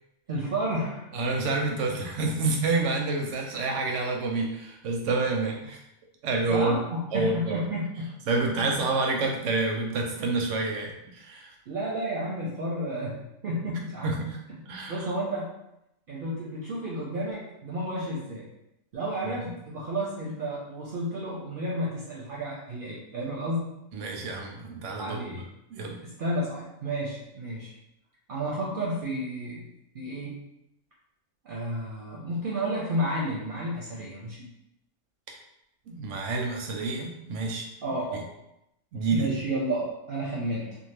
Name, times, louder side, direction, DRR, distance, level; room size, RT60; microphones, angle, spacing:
voice 1, 0.3-1.1 6.5-8.1 8.6-8.7 11.7-14.1 14.9-15.5 16.1-18.5 18.9-23.7 25.0-25.4 26.0-27.7 28.3-29.7 29.9-30.4 31.4-34.5 37.8-38.3 39.1-40.8, right 1 dB, 60° right, -4 dB, 0.7 m, -31 dB
voice 2, 1.1-5.8 6.2-6.8 7.1-7.6 8.3-11.5 14.0-14.4 14.7-15.1 19.4-19.5 23.9-25.4 25.7-26.0 35.3-35.4 35.9-37.7 38.9-39.3, right 3 dB, 85° right, 1 dB, 0.9 m, -28 dB
2.6 x 2.4 x 3.2 m, 0.84 s
omnidirectional pair, 1.2 m